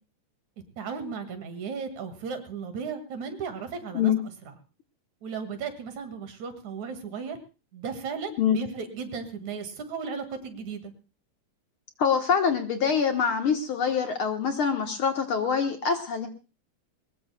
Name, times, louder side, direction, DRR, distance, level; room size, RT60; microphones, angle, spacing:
voice 1, 0.8-4.1 4.4-4.5 5.2-7.4 7.7-10.9, right 5 dB, 75° right, 7 dB, 3.2 m, -35 dB
voice 2, 12.0-16.3, left 6 dB, 55° left, 5 dB, 1.7 m, -25 dB
22.0 x 20.0 x 2.2 m, 0.31 s
omnidirectional pair, 3.4 m